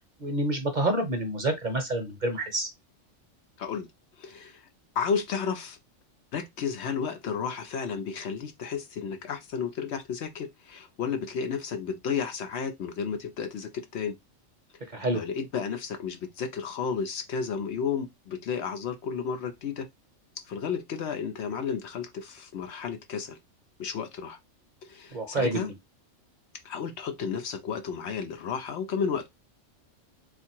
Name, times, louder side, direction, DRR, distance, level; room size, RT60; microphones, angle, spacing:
voice 1, 0.2-2.7 14.9-15.2 25.1-25.6, right 1 dB, 40° right, 0.8 m, -28 dB
voice 2, 3.6-3.9 4.2-4.7 5.0-5.8 6.3-14.2 15.1-19.9 20.4-23.4 23.8-24.4 24.8-25.7 26.6-29.3, left 6 dB, 65° left, 0.8 m, -32 dB
3.6 x 2.5 x 4.3 m
omnidirectional pair, 1.3 m